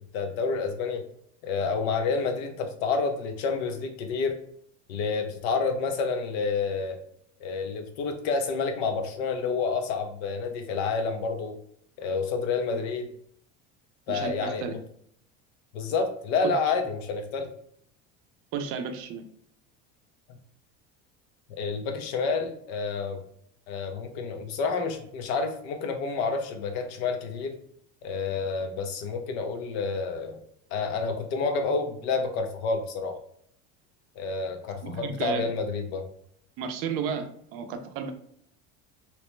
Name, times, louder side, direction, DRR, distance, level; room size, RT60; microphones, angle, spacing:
voice 1, 0.1-1.0 1.4-4.4 4.9-7.0 7.4-11.6 12.0-13.1 14.1-14.8 15.7-17.5 21.6-23.2 23.7-27.5 28.0-30.4 30.7-33.2 34.2-36.1, left 4 dB, 90° left, 6 dB, 0.6 m, -29 dB
voice 2, 14.1-14.7 16.4-16.5 18.5-19.3 34.8-35.5 36.6-38.1, right 6 dB, 50° right, 7 dB, 0.4 m, -33 dB
2.9 x 2.1 x 3.0 m, 0.67 s
cardioid pair, 170°, 30 cm